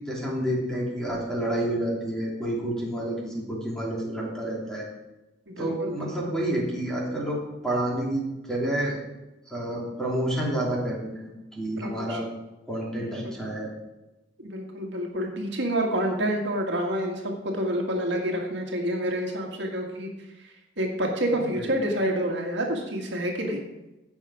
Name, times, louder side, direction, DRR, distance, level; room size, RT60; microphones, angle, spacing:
voice 1, 0.1-4.9 5.6-9.0 9.5-12.3 12.7-13.7 21.5-21.8, right 1 dB, 5° left, -4 dB, 3.0 m, -29 dB
voice 2, 5.5-6.3 11.8-12.2 12.9-13.3 14.4-23.6, right 1 dB, 65° right, 1 dB, 1.9 m, -28 dB
16.0 x 5.9 x 4.9 m, 1.0 s
head